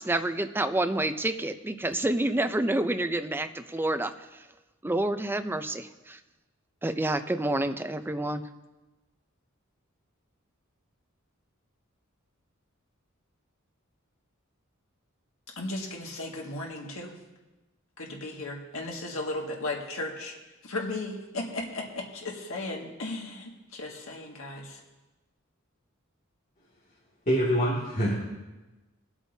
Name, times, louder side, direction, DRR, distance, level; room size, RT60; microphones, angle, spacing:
voice 1, 0.0-4.4 4.8-6.2 6.8-8.5, right 1 dB, 10° right, 8 dB, 0.5 m, -28 dB
voice 2, 15.5-17.2 18.0-20.4 20.6-24.8, left 2 dB, 75° left, 0 dB, 1.9 m, -36 dB
voice 3, 27.3-28.1, equal, 40° left, -6 dB, 2.3 m, -25 dB
21.0 x 8.0 x 2.8 m, 1.1 s
head